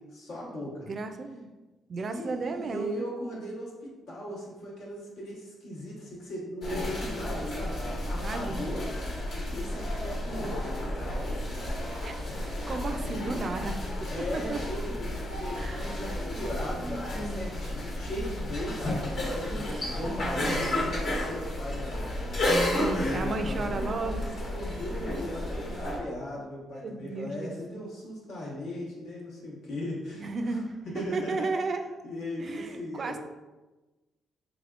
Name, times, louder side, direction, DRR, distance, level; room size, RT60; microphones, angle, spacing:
voice 1, 0.1-0.9 2.0-3.7 4.1-8.8 9.5-10.7 11.0-11.3 12.9-13.4 14.1-22.2 22.9-31.5 32.0-33.2, equal, 80° left, -5 dB, 1.2 m, -38 dB
voice 2, 0.9-1.5 1.9-3.1 8.2-8.7 12.0-12.2 12.4-14.6 15.5-15.9 16.7-17.5 19.3-21.0 22.7-24.2 26.7-27.5 30.2-31.8 32.4-33.2, right 3 dB, 45° right, 7 dB, 0.3 m, -35 dB
sound 1, 6.6-26.0, left 1 dB, 65° left, 1.2 m, -32 dB
sound 2, 11.4-19.7, left 2 dB, 30° left, 0.6 m, -48 dB
3.5 x 3.4 x 2.4 m, 1.2 s
cardioid pair, 90°, 0 cm